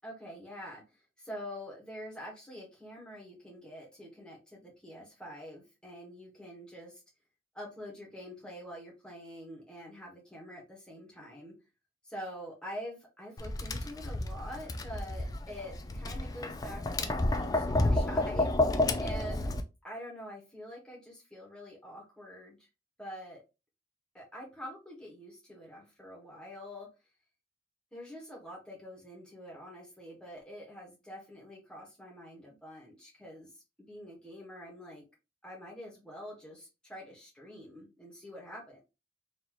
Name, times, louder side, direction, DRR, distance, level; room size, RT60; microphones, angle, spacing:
voice 1, 0.0-0.8 1.2-7.0 7.5-11.5 12.0-19.5 19.8-22.6 23.0-23.4 24.1-26.9 27.9-33.5 33.8-35.0 35.4-38.8, equal, 5° left, 1.5 m, -46 dB
Tap, 13.4-19.6, left 2 dB, 20° left, 0.3 m, -30 dB
4.0 x 3.0 x 3.0 m
head